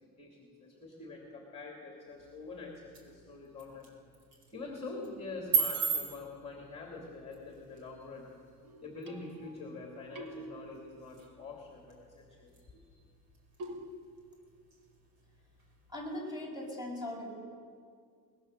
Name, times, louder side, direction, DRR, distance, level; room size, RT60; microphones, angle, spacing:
voice 1, 0.0-3.9 4.5-8.3 8.8-13.0, left 3 dB, 15° left, -1 dB, 2.7 m, -45 dB
sound 1, 2.1-16.1, right 6 dB, 75° right, 4.8 m, -41 dB
sound 2, 8.6-9.8 10.2-11.4 13.6-13.9, right 1 dB, 55° right, 1.8 m, -46 dB
voice 2, 15.9-17.2, left 1 dB, 10° right, -2 dB, 5.7 m, -39 dB
23.5 x 20.0 x 6.7 m, 2.2 s
cardioid pair, 180°, 40 cm